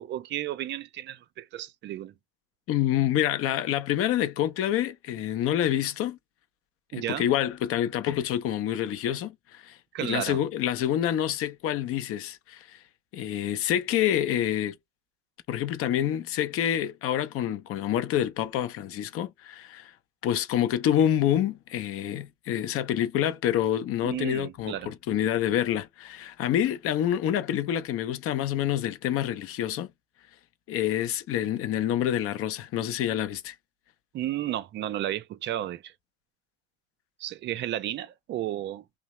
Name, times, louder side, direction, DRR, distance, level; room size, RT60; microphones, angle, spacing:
voice 1, 0.0-2.1 6.9-7.3 9.9-10.4 24.0-24.9 34.1-35.9 37.2-38.8, right 12 dB, 35° right, 0.4 m, -33 dB
voice 2, 2.7-6.2 6.9-12.7 13.1-14.8 15.5-19.9 20.2-29.9 30.7-33.5, left 11 dB, 45° left, 0.6 m, -27 dB
2.7 x 2.0 x 3.0 m
supercardioid pair, 110°, 31 cm